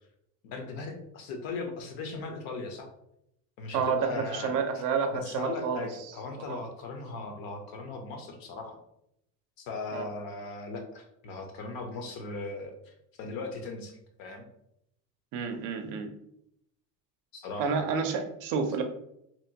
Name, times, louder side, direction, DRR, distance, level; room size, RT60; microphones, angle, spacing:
voice 1, 0.4-2.9 3.6-4.5 5.1-8.8 9.7-14.5 17.3-17.7, left 3 dB, 65° left, 4 dB, 0.7 m, -38 dB
voice 2, 3.7-5.9 6.5-6.6 9.9-10.1 15.3-16.1 17.6-18.8, right 5 dB, 55° right, 6 dB, 0.5 m, -29 dB
2.8 x 2.1 x 2.7 m, 0.77 s
cardioid pair, 140°, 38 cm